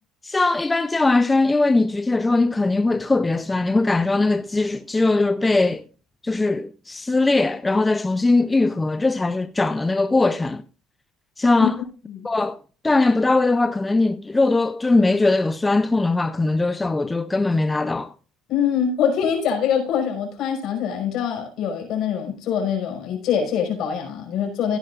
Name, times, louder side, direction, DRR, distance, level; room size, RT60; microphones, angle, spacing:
voice 1, 0.2-5.8 6.2-10.6 11.4-11.8 12.2-12.6 12.8-18.1, left 3 dB, 15° left, 0.6 m, -20 dB
voice 2, 18.5-24.8, left 8 dB, 60° left, 5.3 m, -24 dB
16.0 x 10.0 x 2.5 m
cardioid pair, 120°, 0 cm